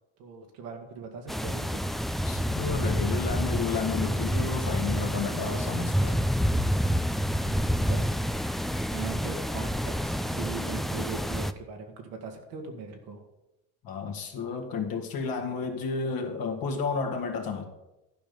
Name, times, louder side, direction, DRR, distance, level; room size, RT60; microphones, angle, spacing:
voice 1, 0.2-2.0 7.4-8.1 8.3-13.2, right 5 dB, 80° right, 3 dB, 2.0 m, -40 dB
sound 1, 1.3-11.5, equal, ahead, 0.3 m, -28 dB
voice 2, 2.3-6.3 13.8-17.6, left 5 dB, 65° left, 3 dB, 2.0 m, -32 dB
11.5 x 5.1 x 6.9 m, 0.95 s
supercardioid pair, 80°, 39 cm